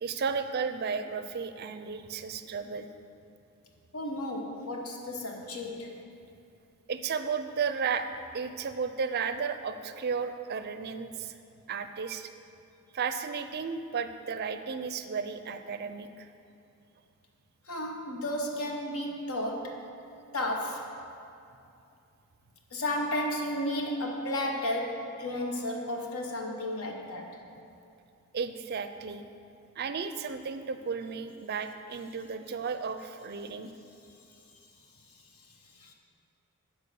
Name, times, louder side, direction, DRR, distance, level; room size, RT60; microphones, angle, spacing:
voice 1, 0.0-2.9 6.9-8.1 8.3-11.3 11.7-12.3 12.9-16.3 28.3-29.2 29.8-33.7, right 5 dB, 45° right, 9 dB, 0.4 m, -34 dB
voice 2, 3.9-5.9 17.7-19.8 20.3-20.9 22.7-27.4 35.8-35.9, left 1 dB, 75° left, 2 dB, 1.1 m, -33 dB
10.0 x 4.4 x 6.9 m, 2.6 s
head